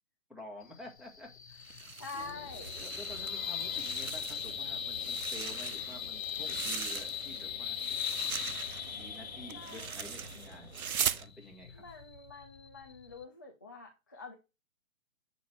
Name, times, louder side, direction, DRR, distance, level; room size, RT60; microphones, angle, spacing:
voice 1, 0.3-2.5 2.8-8.1 8.9-10.7 11.2-11.8, left 2 dB, ahead, 0 dB, 1.4 m, -50 dB
sound 1, 0.6-13.2, left 8 dB, 70° left, 1.5 m, -39 dB
sound 2, 1.6-3.3 3.6-4.6 4.9-7.4 7.8-11.3, right 7 dB, 80° right, 0.7 m, -39 dB
voice 2, 2.0-2.8 9.5-10.1 11.7-14.3, left 4 dB, 15° left, 0 dB, 0.4 m, -46 dB
sound 3, 2.1-11.2, right 2 dB, 50° right, 2.4 m, -52 dB
7.7 x 5.2 x 6.4 m, 0.27 s
figure-of-eight pair, 135°, 42 cm